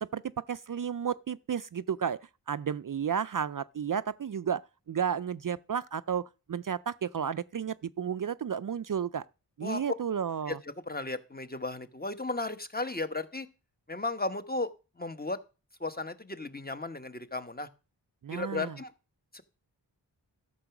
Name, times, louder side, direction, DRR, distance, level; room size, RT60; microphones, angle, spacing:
voice 1, 0.0-2.2 2.5-6.2 6.5-9.3 9.6-10.6 18.2-18.7, right 7 dB, 50° right, 0.5 m, -32 dB
voice 2, 10.5-13.5 13.9-14.7 15.0-15.4 15.8-17.7 18.3-18.9 19.3-19.4, left 2 dB, 20° left, 1.2 m, -35 dB
12.5 x 6.9 x 6.0 m
cardioid pair, 50°, 43 cm